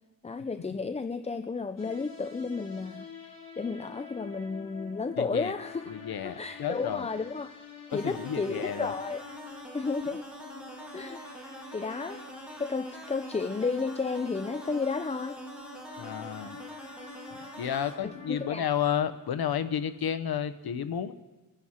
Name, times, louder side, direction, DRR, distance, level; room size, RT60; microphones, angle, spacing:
voice 1, 0.2-5.9 6.2-7.5 7.9-9.2 9.7-10.3 10.9-11.2 11.5-12.2 12.6-15.4 18.0-18.7, left 4 dB, 20° left, 9 dB, 0.4 m, -32 dB
sound 1, 1.8-19.0, left 4 dB, 45° left, 2.7 m, -47 dB
voice 2, 5.2-5.5 5.9-7.1 7.9-8.9 16.0-16.6 17.6-21.1, left 9 dB, 90° left, 12 dB, 0.8 m, -31 dB
sound 2, 7.9-17.9, equal, 5° right, 2.6 m, -45 dB
23.0 x 11.0 x 4.3 m, 1.2 s
wide cardioid pair, 135°, 36 cm